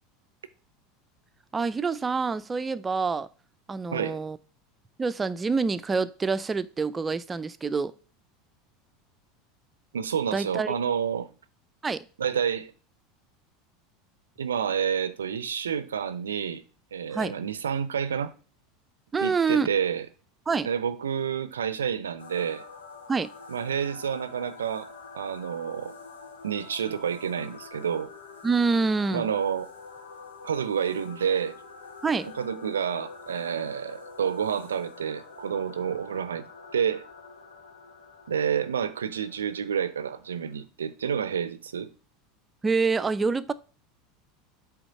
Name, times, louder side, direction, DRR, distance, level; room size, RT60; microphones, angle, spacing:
voice 1, 1.5-3.3 3.7-4.4 5.0-7.9 10.3-10.7 11.8-12.1 17.1-17.4 19.1-19.7 20.5-20.7 23.1-23.3 28.4-29.3 32.0-32.3 42.6-43.5, right 4 dB, 20° right, 0.6 m, -26 dB
voice 2, 9.9-11.3 12.2-12.7 14.4-16.6 16.9-18.3 19.2-20.1 20.7-22.6 23.5-25.9 26.4-28.1 29.1-29.7 30.4-31.5 32.2-36.5 36.7-37.1 38.3-41.9, right 8 dB, 75° right, 0.5 m, -29 dB
sound 1, 22.2-40.6, left 4 dB, 75° left, 1.3 m, -46 dB
8.0 x 3.5 x 5.7 m
figure-of-eight pair, 75°, 0 cm